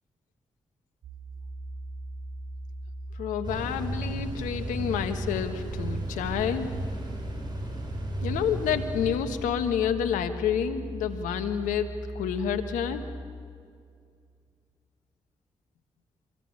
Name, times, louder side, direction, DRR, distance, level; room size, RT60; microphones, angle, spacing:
sound 1, 1.0-13.2, right 1 dB, 70° right, 7.1 m, -39 dB
voice 1, 3.2-6.7 8.2-13.1, left 8 dB, 90° left, 9 dB, 1.3 m, -29 dB
sound 2, 3.4-9.5, right 2 dB, 35° right, 7.8 m, -35 dB
25.5 x 20.5 x 8.9 m, 2.2 s
supercardioid pair, 40°, 13 cm